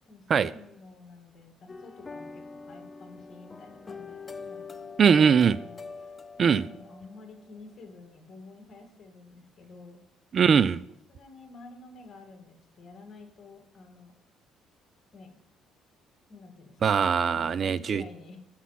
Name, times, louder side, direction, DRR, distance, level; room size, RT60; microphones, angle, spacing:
voice 1, 0.1-4.8 5.1-10.0 11.1-14.1 15.1-15.4 16.3-16.8 17.4-18.4, left 3 dB, 45° left, 5 dB, 1.8 m, -50 dB
sound 1, 1.7-7.6, left 4 dB, 20° left, 0.5 m, -44 dB
voice 2, 5.0-5.6 6.4-6.6 10.3-10.8 16.8-18.0, right 6 dB, 40° right, 18 dB, 0.3 m, -21 dB
8.2 x 5.7 x 5.8 m, 0.83 s
cardioid pair, 130°, 0 cm